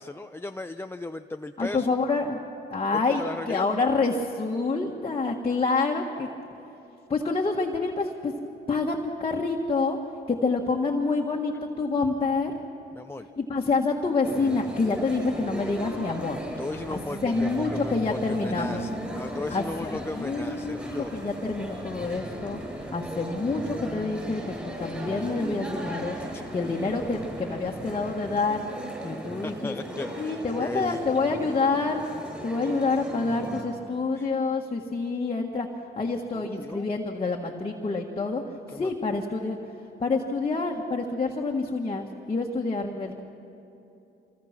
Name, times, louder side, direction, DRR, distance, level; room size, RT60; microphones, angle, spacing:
voice 1, 0.0-1.9 2.9-3.6 12.9-13.3 16.6-21.1 26.3-26.5 29.4-31.5 34.1-34.3 36.3-36.8 38.7-38.9, left 2 dB, 10° left, 6 dB, 0.5 m, -36 dB
voice 2, 1.6-2.4 2.7-6.3 7.1-8.3 8.7-10.0 10.3-12.6 13.4-16.4 16.9-18.9 19.5-20.8 21.1-26.2 26.5-28.6 29.0-29.7 30.2-32.0 32.4-35.7 35.9-38.4 38.7-39.6 40.0-43.2, left 3 dB, 30° left, 0 dB, 1.7 m, -27 dB
sound 1, 14.2-33.6, equal, 5° right, 7.4 m, -36 dB
sound 2, 14.9-28.4, right 1 dB, 30° right, 5.8 m, -50 dB
25.5 x 22.5 x 6.0 m, 2.9 s
cardioid pair, 90°, 20 cm